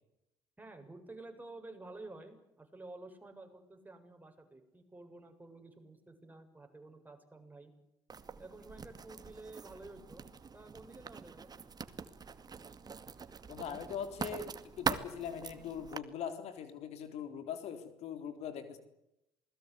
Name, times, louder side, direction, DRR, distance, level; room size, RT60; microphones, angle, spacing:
voice 1, 0.6-7.7 8.4-10.3 10.5-11.7, right 2 dB, 15° right, 4 dB, 7.5 m, -51 dB
Writing, 8.1-16.0, right 5 dB, 35° right, 2.2 m, -43 dB
voice 2, 13.5-18.8, left 8 dB, 65° left, 8 dB, 3.7 m, -41 dB
28.0 x 21.0 x 8.3 m, 0.86 s
hypercardioid pair, 60°, 12 cm